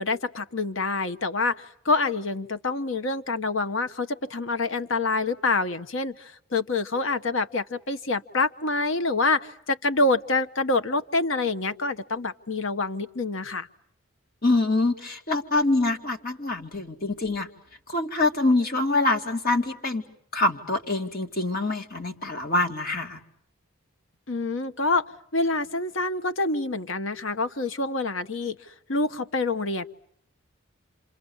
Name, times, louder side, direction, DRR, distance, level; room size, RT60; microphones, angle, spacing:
voice 1, 0.0-13.7 24.3-25.1 25.3-28.6 28.9-29.9, left 3 dB, 70° left, 11 dB, 1.2 m, -26 dB
voice 2, 14.4-17.5 17.9-20.0 20.3-23.2, left 2 dB, 45° left, 4 dB, 2.4 m, -25 dB
28.5 x 26.0 x 7.2 m, 0.66 s
head